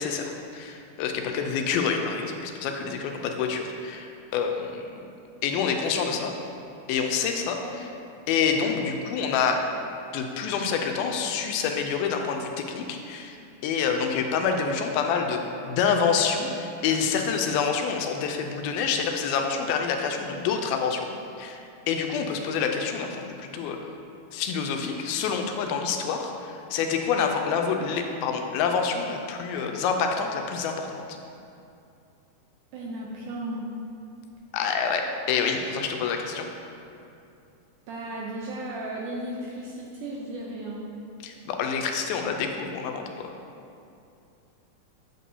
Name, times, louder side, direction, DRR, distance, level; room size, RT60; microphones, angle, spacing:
voice 1, 0.0-5.1 5.4-6.3 6.9-7.9 8.3-9.7 10.1-13.4 13.6-21.1 21.4-21.6 21.9-23.8 24.3-31.1 34.5-36.5 41.2-43.3, left 6 dB, 90° left, 3 dB, 2.4 m, -27 dB
voice 2, 32.7-33.7 37.9-40.9, right 1 dB, 80° right, -3 dB, 1.9 m, -35 dB
8.2 x 7.5 x 2.7 m, 2.6 s
omnidirectional pair, 4.2 m